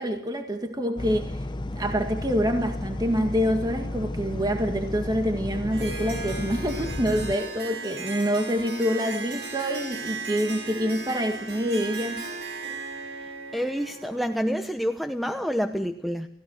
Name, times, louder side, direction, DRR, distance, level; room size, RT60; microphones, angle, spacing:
voice 1, 0.0-12.3, equal, 25° right, 1.9 m, -26 dB
sound 1, 1.0-7.4, left 1 dB, 25° left, 0.8 m, -33 dB
Harp, 5.7-14.5, right 4 dB, 75° right, 5.6 m, -37 dB
voice 2, 13.5-16.3, equal, ahead, 0.9 m, -28 dB
30.0 x 16.5 x 6.4 m
head